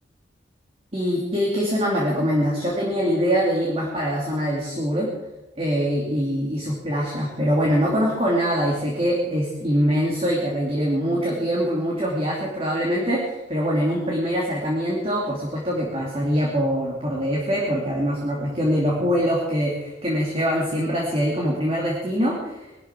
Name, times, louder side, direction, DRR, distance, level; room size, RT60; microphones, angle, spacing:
voice 1, 0.9-5.1 5.6-22.7, equal, 30° right, -3 dB, 2.9 m, -23 dB
21.0 x 13.0 x 4.7 m, 0.98 s
head